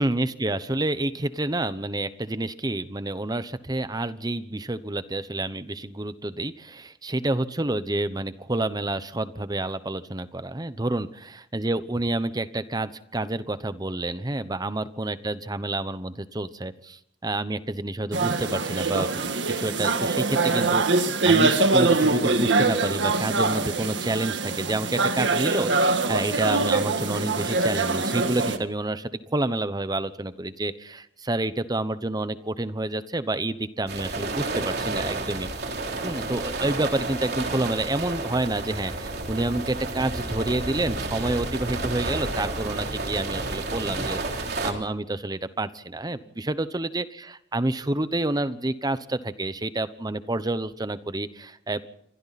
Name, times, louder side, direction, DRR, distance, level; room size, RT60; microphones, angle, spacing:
voice 1, 0.0-11.1 11.5-19.3 19.6-35.5 36.0-51.9, right 2 dB, 20° right, 13 dB, 1.0 m, -29 dB
sound 1, 18.1-28.6, right 3 dB, 80° right, 1.7 m, -23 dB
sound 2, 33.9-44.7, right 2 dB, 65° right, 3.5 m, -31 dB
28.0 x 24.0 x 4.2 m, 0.71 s
head